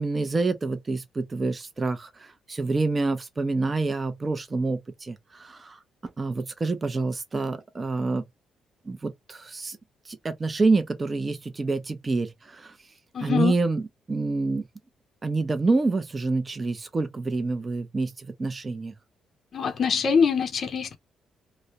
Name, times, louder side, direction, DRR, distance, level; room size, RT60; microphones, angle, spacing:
voice 1, 0.0-5.8 6.2-8.2 8.9-9.8 10.1-12.7 13.2-13.8 14.1-14.6 15.2-18.9, right 3 dB, 30° right, 0.4 m, -27 dB
voice 2, 13.1-13.6 19.5-21.0, left 6 dB, 50° left, 0.5 m, -24 dB
2.3 x 2.0 x 2.7 m
cardioid pair, 90°, 0 cm